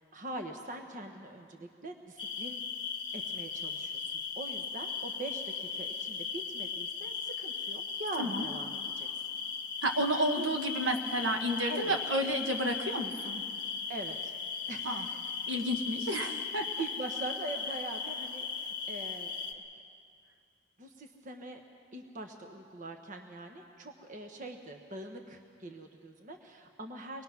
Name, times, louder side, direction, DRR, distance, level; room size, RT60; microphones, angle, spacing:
voice 1, 0.1-2.6 3.1-9.1 10.3-10.5 11.7-12.0 13.9-14.3 14.7-15.2 16.2-19.4 20.8-21.6 21.9-27.2, right 2 dB, 40° right, 4 dB, 1.2 m, -43 dB
sound 1, 2.2-19.5, left 5 dB, 25° left, 1.5 m, -37 dB
voice 2, 9.8-13.4 14.8-15.1 15.5-16.7, equal, 75° right, 4 dB, 1.6 m, -31 dB
24.0 x 21.0 x 6.0 m, 2.5 s
head